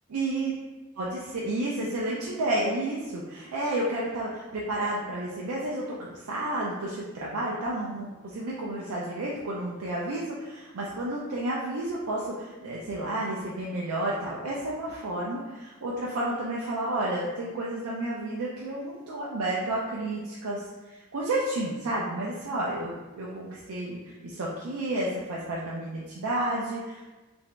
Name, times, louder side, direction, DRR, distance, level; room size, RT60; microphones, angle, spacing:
voice 1, 0.1-0.5 1.0-27.1, right 1 dB, 85° right, -5 dB, 0.5 m, -31 dB
2.9 x 2.6 x 3.2 m, 1.2 s
head